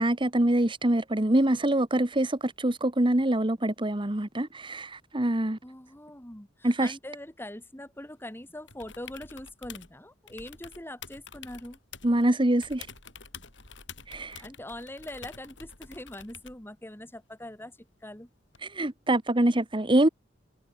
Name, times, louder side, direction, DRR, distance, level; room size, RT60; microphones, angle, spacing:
voice 1, 0.0-5.6 6.6-6.9 12.0-12.9 14.1-14.4 18.6-20.1, right 1 dB, 25° right, 1.3 m, -25 dB
voice 2, 5.6-11.8 14.4-18.3, left 1 dB, 10° left, 3.0 m, -42 dB
sound 1, 8.7-9.9 10.3-12.3 12.6-16.7 18.5-18.6, left 6 dB, 70° left, 7.0 m, -47 dB
head